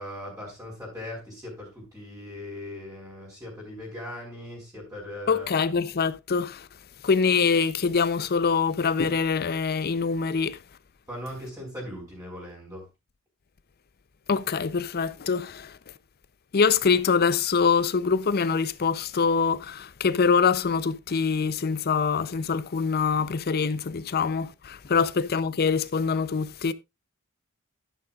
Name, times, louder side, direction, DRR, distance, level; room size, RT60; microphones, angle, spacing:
voice 1, 0.0-5.7 11.1-12.9 24.9-25.1, left 1 dB, 15° right, 4.3 m, -39 dB
voice 2, 5.3-6.7 7.0-10.6 14.3-15.7 16.5-26.7, left 5 dB, 45° left, 0.6 m, -24 dB
11.5 x 9.9 x 2.4 m
head